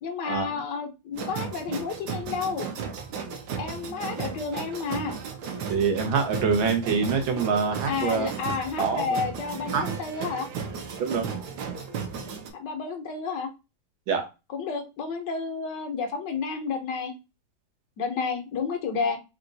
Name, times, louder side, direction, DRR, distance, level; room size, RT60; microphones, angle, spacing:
voice 1, 0.0-2.7 3.6-5.2 7.9-10.5 12.5-13.5 14.5-17.1 18.0-19.2, left 5 dB, 65° left, 5 dB, 1.4 m, -31 dB
sound 1, 1.1-12.5, right 6 dB, 65° right, 1.3 m, -35 dB
voice 2, 5.7-8.3 8.8-9.2 9.7-9.9 11.0-11.3 14.1-14.3, right 5 dB, 85° right, 3 dB, 1.8 m, -25 dB
4.4 x 2.4 x 3.9 m, 0.26 s
omnidirectional pair, 2.1 m